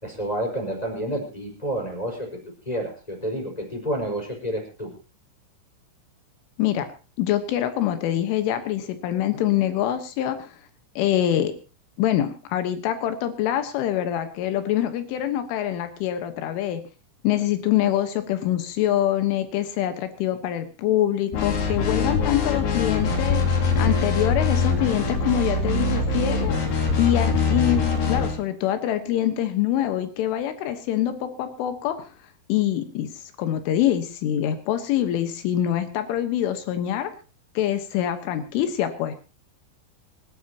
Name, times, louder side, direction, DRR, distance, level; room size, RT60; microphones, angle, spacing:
voice 1, 0.0-2.4 2.6-4.9, right 1 dB, 10° left, 0 dB, 4.5 m, -29 dB
voice 2, 7.2-10.5 11.0-11.5 12.0-16.8 17.2-26.5 27.0-32.1 32.5-37.1 37.6-39.2, left 11 dB, 75° left, 9 dB, 3.6 m, -25 dB
sound 1, 21.3-28.4, left 4 dB, 50° left, 3.9 m, -23 dB
26.0 x 12.5 x 2.9 m, 0.32 s
omnidirectional pair, 6.0 m